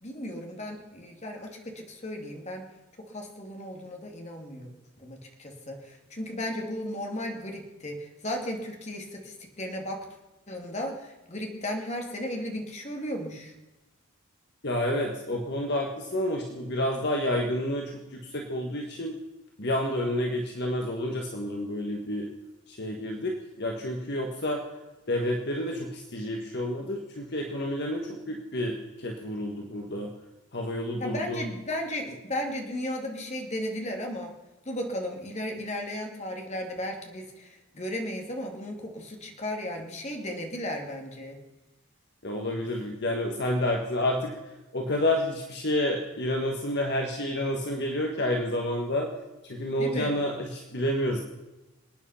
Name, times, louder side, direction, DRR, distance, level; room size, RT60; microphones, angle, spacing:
voice 1, 0.0-2.7 3.0-4.7 5.0-10.0 10.5-13.5 31.0-34.3 34.7-41.4 49.8-50.2, left 1 dB, 30° left, 2 dB, 2.5 m, -35 dB
voice 2, 14.6-19.2 19.6-22.3 22.7-24.6 25.1-30.1 30.5-31.5 42.2-44.4 44.7-49.1 49.4-51.2, left 1 dB, 50° left, 1 dB, 1.6 m, -29 dB
26.5 x 9.3 x 5.7 m, 1.1 s
head